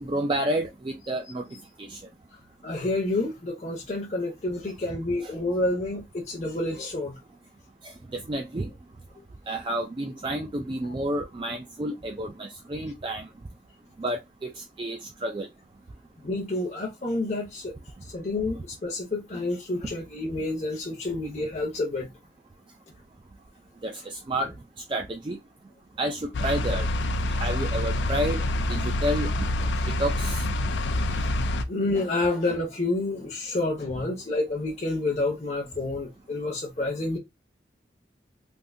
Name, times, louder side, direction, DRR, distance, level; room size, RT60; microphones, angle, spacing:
voice 1, 0.0-1.5 1.8-2.0 5.2-5.3 7.8-8.7 9.5-13.3 14.0-15.5 23.8-24.5 24.9-25.4 26.0-26.9 27.2-28.4 28.7-29.3 29.9-30.4, right 1 dB, 25° right, 0.4 m, -30 dB
voice 2, 2.6-7.2 16.2-17.7 18.1-22.1 29.7-29.8 30.9-31.1 31.7-37.2, left 2 dB, 40° left, 0.7 m, -29 dB
sound 1, 26.3-31.6, left 1 dB, 80° left, 0.4 m, -26 dB
3.5 x 2.6 x 2.6 m
head